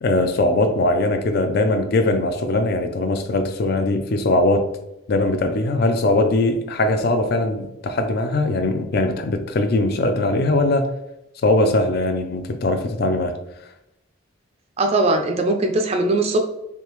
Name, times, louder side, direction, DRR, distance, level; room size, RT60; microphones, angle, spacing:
voice 1, 0.0-4.7 5.1-10.9 11.4-13.3, left 2 dB, 50° left, 0.4 m, -20 dB
voice 2, 14.8-16.4, right 2 dB, 30° right, 0.3 m, -20 dB
3.4 x 2.7 x 2.9 m
head